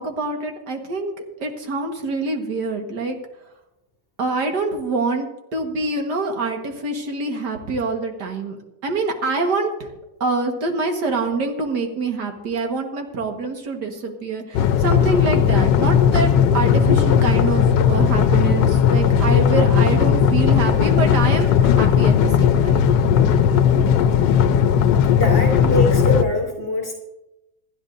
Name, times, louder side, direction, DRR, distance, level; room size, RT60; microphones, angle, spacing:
voice 1, 0.0-3.2 4.2-8.6 8.8-9.9 10.2-22.9 25.6-25.7, right 3 dB, 70° right, 3 dB, 2.1 m, -25 dB
sound 1, 14.5-26.2, left 8 dB, 90° left, 1.3 m, -16 dB
voice 2, 23.5-24.7 25.0-26.9, left 1 dB, 10° left, -3 dB, 1.8 m, -25 dB
27.0 x 9.9 x 2.6 m, 0.94 s
omnidirectional pair, 1.9 m